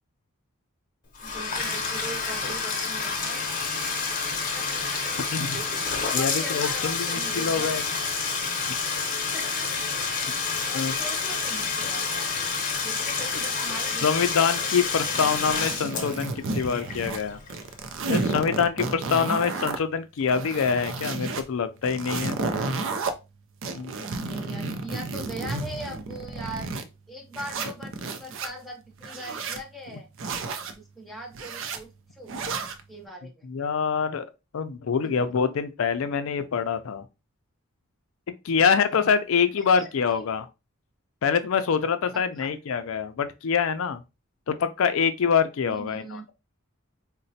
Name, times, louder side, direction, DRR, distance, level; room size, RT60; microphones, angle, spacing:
Bathtub (filling or washing), 1.1-17.9, left 5 dB, 40° left, 0.7 m, -29 dB
voice 1, 1.2-3.5 4.6-5.1 5.5-5.8 6.1-7.8 9.3-10.2 10.6-12.3 12.8-14.7 19.0-19.1 24.2-26.7 27.1-30.1 30.7-32.4 32.9-33.5 35.0-35.4 38.6-38.8 39.7-40.3 42.4-42.5 45.6-46.3, right 1 dB, ahead, 0.7 m, -41 dB
voice 2, 6.1-7.8 10.7-11.0 14.0-17.4 18.1-22.4 23.8-23.9 33.4-34.3 34.5-37.0 38.4-40.4 41.2-44.0 44.5-46.2, left 6 dB, 70° left, 0.4 m, -25 dB
sound 1, 15.1-17.2 17.5-19.8 20.2-21.4 21.8-23.1 23.6-26.9 27.3-28.5 29.0-29.6 30.2-30.7 31.3-31.8 32.3-32.8, right 3 dB, 60° right, 0.4 m, -32 dB
4.0 x 2.1 x 2.7 m
head